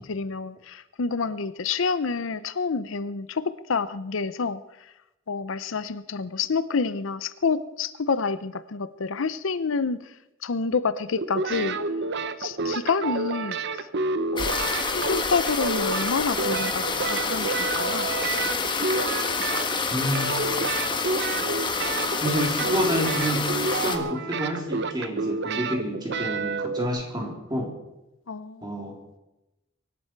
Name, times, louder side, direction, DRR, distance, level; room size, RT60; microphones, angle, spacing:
voice 1, 0.0-4.6 5.3-10.0 10.4-11.8 12.4-13.9 14.3-14.5 14.9-18.1 28.3-28.7, left 4 dB, 70° left, 14 dB, 0.6 m, -28 dB
sound 1, 11.2-19.9 20.1-26.9, right 3 dB, 60° right, 1.0 m, -29 dB
sound 2, 14.4-24.0, left 4 dB, 25° left, 1.4 m, -28 dB
voice 2, 19.9-20.3 22.1-27.7 28.6-29.0, equal, 20° right, 1 dB, 3.5 m, -29 dB
24.0 x 12.0 x 4.6 m, 0.94 s
head